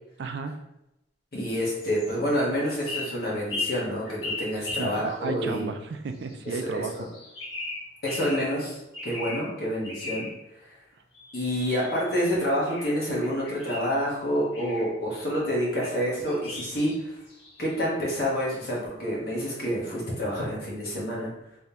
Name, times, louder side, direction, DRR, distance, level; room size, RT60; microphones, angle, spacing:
voice 1, 0.2-0.6 4.7-6.9, right 4 dB, 65° right, 7 dB, 0.3 m, -33 dB
voice 2, 1.3-5.7 6.4-7.1 8.0-10.3 11.3-17.2 17.6-21.3, equal, 50° left, -5 dB, 1.2 m, -28 dB
sound 1, 1.8-2.2 2.7-5.4 6.1-6.6 6.9-8.6 8.9-9.5 9.8-10.4 11.1-12.2 12.7-13.9 14.5-14.9 15.8-15.9 16.3-17.8, left 2 dB, 75° left, 1.3 m, -37 dB
3.5 x 3.1 x 2.8 m, 0.88 s
head